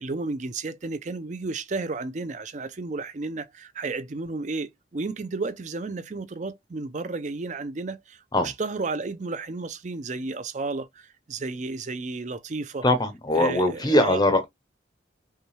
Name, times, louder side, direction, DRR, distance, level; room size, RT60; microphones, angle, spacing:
voice 1, 0.0-12.8 13.3-14.2, right 3 dB, 40° right, 0.5 m, -32 dB
voice 2, 12.8-14.4, left 1 dB, 20° left, 0.6 m, -21 dB
5.5 x 2.3 x 3.2 m
head